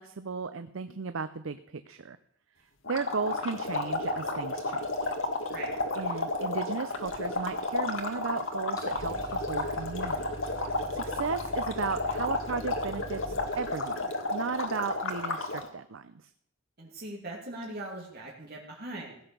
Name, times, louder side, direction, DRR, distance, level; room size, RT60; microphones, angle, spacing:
voice 1, 0.0-2.2 2.6-5.1 6.0-10.3 10.6-16.3, right 5 dB, 80° right, 11 dB, 0.6 m, -35 dB
sound 1, 2.9-15.7, left 2 dB, 75° left, 1.8 m, -32 dB
sound 2, 7.0-8.0 8.3-8.4 8.7-13.9, equal, 20° left, 2.1 m, -45 dB
voice 2, 16.8-19.2, right 1 dB, 50° right, -3 dB, 2.5 m, -40 dB
16.0 x 8.1 x 6.8 m, 0.72 s
head